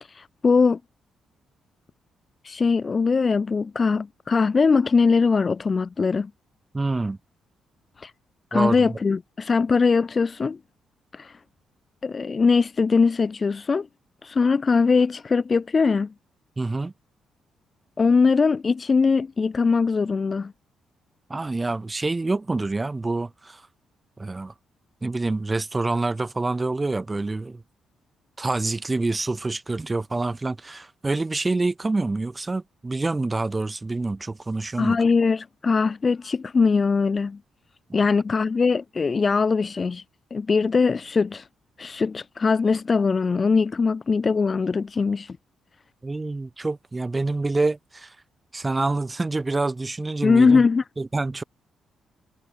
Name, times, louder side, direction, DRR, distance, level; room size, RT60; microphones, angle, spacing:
voice 1, 0.0-0.8 2.4-6.3 8.0-8.1 8.5-10.6 11.1-11.4 12.0-13.9 14.2-16.1 18.0-20.5 34.8-37.4 37.9-40.0 40.3-41.5 41.8-45.4 50.2-50.8, left 4 dB, 40° left, 0.3 m, -21 dB
voice 2, 6.7-7.2 8.5-8.8 16.6-16.9 21.3-23.6 24.2-24.5 25.0-27.6 28.4-35.0 46.0-48.1 48.5-50.6 51.0-51.4, right 3 dB, 25° right, 0.5 m, -26 dB
hypercardioid pair, 40°, 0 cm